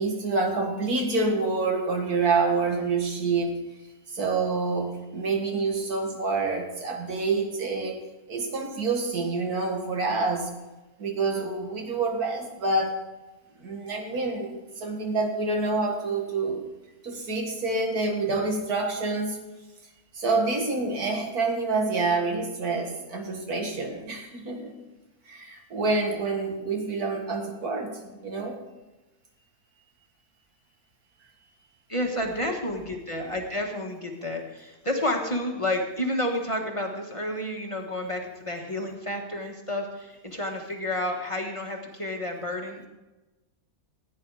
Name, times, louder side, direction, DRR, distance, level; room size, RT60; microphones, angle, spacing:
voice 1, 0.0-3.6 4.1-8.0 8.3-10.5 11.0-13.0 13.6-16.6 17.0-19.4 20.1-24.7 25.3-28.6, right 3 dB, 85° right, 2 dB, 2.3 m, -27 dB
voice 2, 31.9-42.9, left 1 dB, 20° left, 1 dB, 1.4 m, -30 dB
15.0 x 9.5 x 4.8 m, 1.1 s
omnidirectional pair, 1.5 m